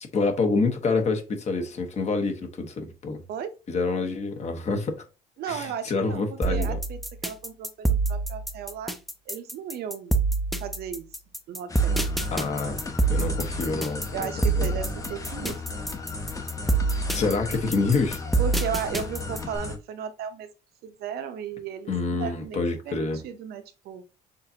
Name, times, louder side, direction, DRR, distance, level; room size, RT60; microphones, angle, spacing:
voice 1, 0.1-3.2 3.7-5.0 5.5-6.8 12.3-12.8 13.1-14.3 14.6-14.8 17.1-18.2 21.9-23.2, left 3 dB, 40° left, 1.2 m, -27 dB
voice 2, 5.4-9.0 9.3-10.1 10.6-11.1 11.5-12.0 14.1-15.9 18.4-20.5 20.8-24.0, right 7 dB, 70° right, 0.8 m, -35 dB
sound 1, 6.4-19.6, right 3 dB, ahead, 0.6 m, -26 dB
sound 2, 11.7-19.8, left 3 dB, 20° left, 1.0 m, -35 dB
6.6 x 2.7 x 2.8 m
cardioid pair, 110°, 17 cm